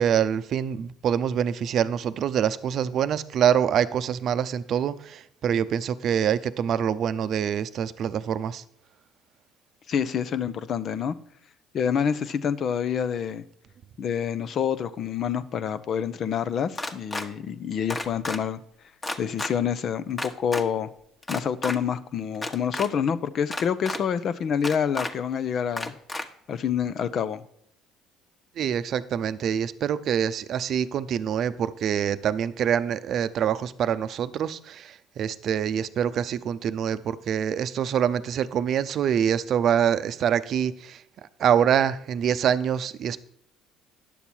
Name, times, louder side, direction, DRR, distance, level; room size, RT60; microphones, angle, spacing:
voice 1, 0.0-8.6 28.6-41.0 41.4-43.2, right 8 dB, 60° right, 0.6 m, -25 dB
voice 2, 9.9-11.1 11.7-13.4 14.0-18.6 19.2-20.9 21.3-26.0 26.5-27.4, left 7 dB, 55° left, 0.7 m, -27 dB
sound 1, 16.8-17.3 17.9-18.4 19.0-19.5 20.2-20.6 21.2-21.8 22.3-22.9 23.5-24.0 24.6-25.1 25.8-26.2, left 2 dB, 20° left, 1.2 m, -31 dB
10.0 x 6.9 x 4.4 m
hypercardioid pair, 65°, 0 cm